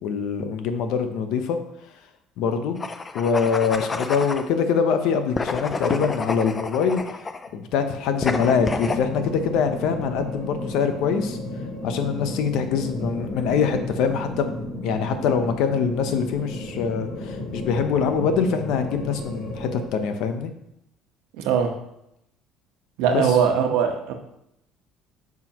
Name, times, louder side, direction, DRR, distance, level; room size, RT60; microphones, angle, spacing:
voice 1, 0.0-1.6 2.4-2.8 3.1-7.0 7.5-11.4 11.8-20.5 23.1-23.4, left 6 dB, 60° left, 8 dB, 0.8 m, -24 dB
sound 1, 2.8-4.5 5.3-7.5 8.2-9.0, left 3 dB, 15° left, 0.4 m, -29 dB
sound 2, 8.2-19.9, left 1 dB, 35° left, 2.3 m, -33 dB
voice 2, 21.4-21.7 23.0-24.1, right 7 dB, 90° right, 3 dB, 1.1 m, -21 dB
8.9 x 6.1 x 3.0 m, 0.80 s
cardioid pair, 175°, 0 cm